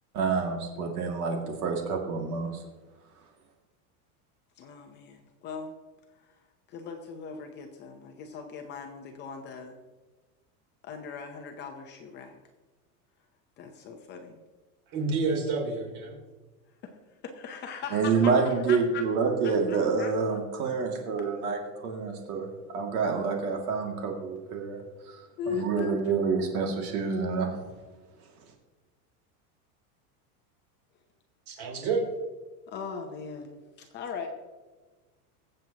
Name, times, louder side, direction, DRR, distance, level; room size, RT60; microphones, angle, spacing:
voice 1, 0.1-2.6 17.9-22.5 22.7-24.8 25.1-25.2 25.5-27.5, right 5 dB, 70° right, 1 dB, 2.4 m, -27 dB
voice 2, 4.6-5.7 6.7-9.8 10.8-12.4 13.6-14.4 16.8-16.9 17.3-18.3 18.7-19.0 19.4-20.1 25.4-26.0 32.7-34.3, left 6 dB, 25° left, 4 dB, 0.7 m, -39 dB
voice 3, 14.9-16.1 31.5-32.1, right 4 dB, 50° right, -1 dB, 3.4 m, -29 dB
22.5 x 7.8 x 2.9 m, 1.3 s
supercardioid pair, 170°, 46 cm